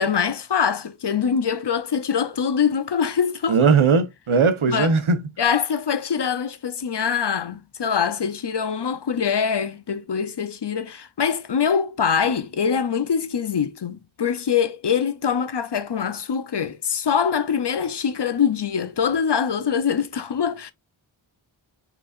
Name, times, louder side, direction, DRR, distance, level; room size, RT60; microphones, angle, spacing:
voice 1, 0.0-3.6 4.7-4.9 5.4-20.7, left 7 dB, 55° left, 0.6 m, -24 dB
voice 2, 3.5-5.3, right 5 dB, 80° right, 0.9 m, -18 dB
4.7 x 3.9 x 2.4 m
wide cardioid pair, 60°, 48 cm